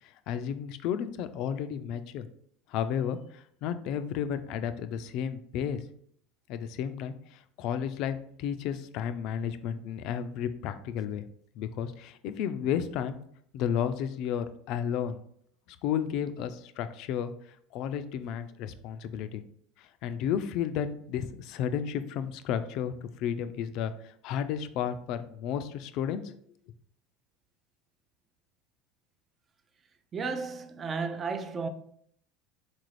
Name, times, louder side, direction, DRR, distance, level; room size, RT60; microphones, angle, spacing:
voice 1, 0.3-2.3 2.7-5.8 6.5-7.1 7.6-11.2 11.6-13.2 13.5-15.2 15.8-17.3 17.7-19.4 20.0-26.3, left 8 dB, 60° left, 0.3 m, -32 dB
voice 2, 30.1-31.7, right 4 dB, 30° right, 0.4 m, -33 dB
4.0 x 2.5 x 3.1 m
supercardioid pair, 105°, 0 cm